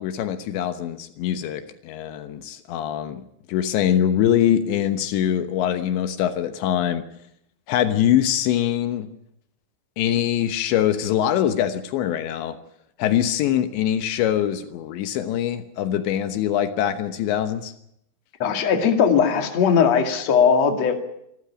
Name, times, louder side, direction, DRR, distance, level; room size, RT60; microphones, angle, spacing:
voice 1, 0.0-3.2 3.5-7.0 7.7-9.1 10.0-12.6 13.0-17.7, left 10 dB, 80° left, 9 dB, 3.3 m, -23 dB
voice 2, 18.4-21.0, left 6 dB, 45° left, 5 dB, 2.9 m, -19 dB
27.0 x 13.5 x 9.9 m, 0.78 s
omnidirectional pair, 5.2 m